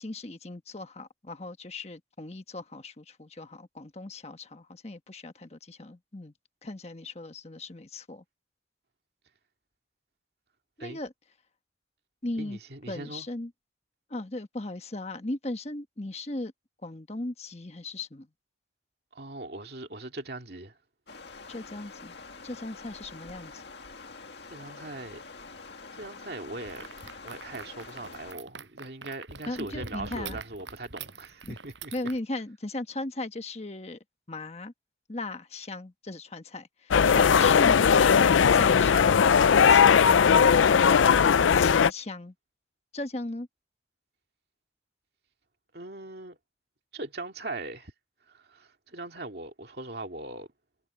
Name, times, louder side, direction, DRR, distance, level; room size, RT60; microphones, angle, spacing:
voice 1, 0.0-6.3 6.6-8.2 10.8-11.1 12.2-12.6 12.9-13.5 14.1-16.5 16.8-18.3 21.5-22.1 22.4-23.6 29.5-30.4 31.4-31.5 31.9-34.0 34.3-34.7 35.1-39.3 39.7-40.4 40.7-42.3 42.9-43.5, left 2 dB, 35° left, 1.3 m, -37 dB
voice 2, 12.4-13.3 19.1-20.8 24.5-25.2 25.9-26.9 27.2-31.9 37.0-37.5 45.7-46.4 46.9-47.9 48.3-50.5, right 2 dB, 55° right, 2.3 m, -40 dB
Stream, 21.1-28.3, left 4 dB, 65° left, 2.0 m, -46 dB
sound 1, 26.7-32.2, right 4 dB, 80° right, 6.8 m, -44 dB
sound 2, 36.9-41.9, left 7 dB, 90° left, 0.4 m, -19 dB
head